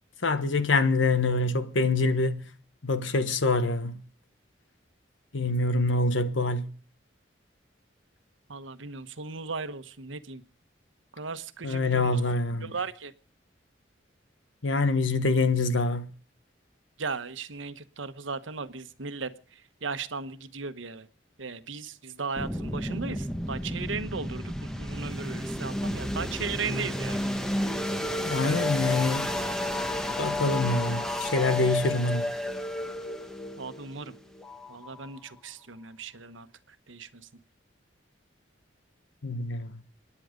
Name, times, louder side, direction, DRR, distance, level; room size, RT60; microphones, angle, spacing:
voice 1, 0.2-2.4 2.8-4.0 5.3-6.7 11.6-12.7 14.6-16.1 28.3-29.3 30.2-32.3 39.2-39.7, left 3 dB, 85° left, 1.3 m, -25 dB
voice 2, 8.5-10.4 11.1-12.2 12.6-13.1 17.0-19.3 19.8-21.1 21.4-27.2 33.6-34.1 34.7-36.5 36.9-37.1, right 4 dB, 90° right, 1.2 m, -36 dB
sound 1, 22.4-35.2, left 1 dB, 5° left, 1.1 m, -32 dB
27.0 x 10.0 x 5.2 m
head